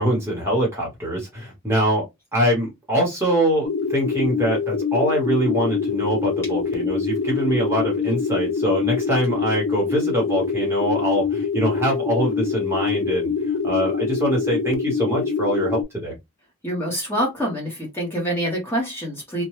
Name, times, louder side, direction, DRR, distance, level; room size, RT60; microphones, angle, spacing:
voice 1, 0.0-2.0 2.3-16.1, right 1 dB, 10° right, 1.0 m, -23 dB
sound 1, 3.6-15.8, left 5 dB, 70° left, 0.6 m, -24 dB
voice 2, 16.6-19.4, equal, 10° left, 1.0 m, -26 dB
2.9 x 2.2 x 3.0 m
head